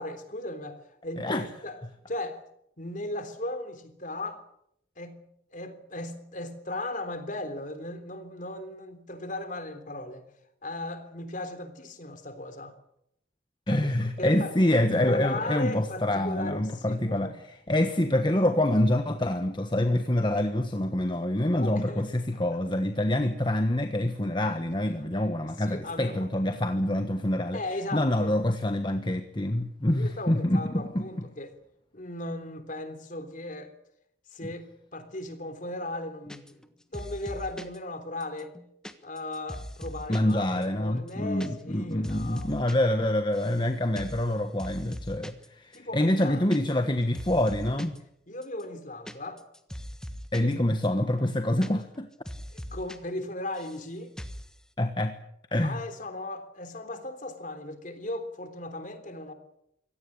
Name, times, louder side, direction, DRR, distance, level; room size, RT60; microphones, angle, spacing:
voice 1, 0.0-1.8 2.1-2.4 2.8-4.4 5.0-5.2 5.5-10.2 10.6-12.7 13.7-13.8 14.2-14.5 15.1-17.3 21.5-22.0 22.3-22.6 25.6-26.3 27.5-28.4 29.9-31.5 31.9-33.7 34.3-38.5 39.0-42.5 45.7-46.5 48.3-49.4 50.4-50.6 52.5-54.1 55.6-59.3, left 1 dB, 40° left, 9 dB, 3.5 m, -37 dB
voice 2, 13.7-27.6 27.9-31.0 40.1-48.0 50.3-52.1 54.8-55.2 55.5-55.8, left 1 dB, 25° left, 7 dB, 1.3 m, -26 dB
sound 1, 36.3-36.7 36.9-37.8 38.2-40.3 40.6-40.7 41.0-41.5 41.7-42.8 43.0-43.6 44.0-44.3 44.6-45.5 45.7-45.8 46.1-46.9 47.1-48.0 48.4-50.5 50.8-50.9 51.2-52.0 52.3-53.0 53.2-53.9 54.2-54.5, equal, 5° left, 1.3 m, -41 dB
24.5 x 17.5 x 8.7 m, 0.77 s
head